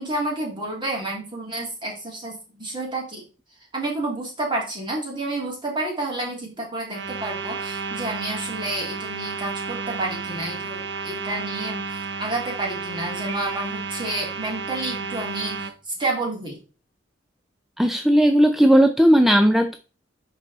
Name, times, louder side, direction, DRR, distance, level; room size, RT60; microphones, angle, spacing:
voice 1, 0.0-3.2 3.7-15.7 16.0-16.6, right 2 dB, 25° right, -1 dB, 2.9 m, -30 dB
sound 1, 6.9-15.7, right 4 dB, 65° right, 0.8 m, -32 dB
Piano, 13.3-14.2, right 6 dB, 20° left, 1.4 m, -41 dB
voice 2, 17.8-19.8, equal, ahead, 6 dB, 0.4 m, -16 dB
10.5 x 4.2 x 4.1 m, 0.35 s
head